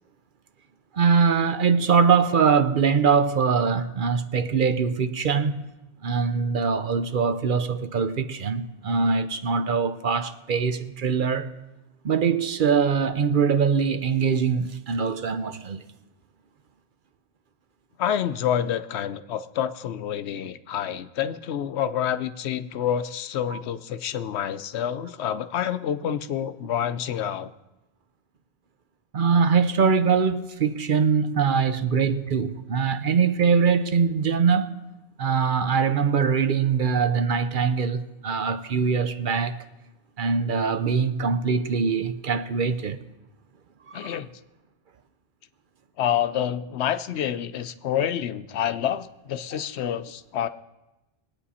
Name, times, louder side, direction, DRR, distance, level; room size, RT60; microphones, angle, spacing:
voice 1, 0.9-5.7 6.0-11.5 12.0-15.8 23.5-23.6 29.1-34.8 35.2-39.6 40.2-43.0 43.9-44.2, right 6 dB, 55° right, 0.8 m, -22 dB
voice 2, 18.0-27.5 43.9-44.3 46.0-50.5, left 9 dB, 85° left, 0.9 m, -28 dB
20.5 x 8.8 x 4.2 m
omnidirectional pair, 1.1 m